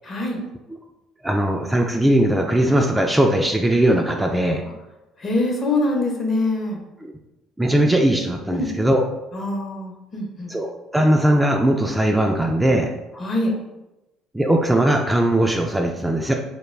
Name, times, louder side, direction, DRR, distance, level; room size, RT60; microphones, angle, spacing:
voice 1, 0.0-0.4 5.2-6.8 8.5-8.7 9.3-10.5 13.1-13.5, left 2 dB, 40° left, 1 dB, 0.8 m, -24 dB
voice 2, 1.2-4.6 7.6-9.0 10.5-12.9 14.3-16.3, right 1 dB, 10° right, 2 dB, 0.3 m, -19 dB
2.2 x 2.2 x 3.1 m, 0.97 s
hypercardioid pair, 60°, 0 cm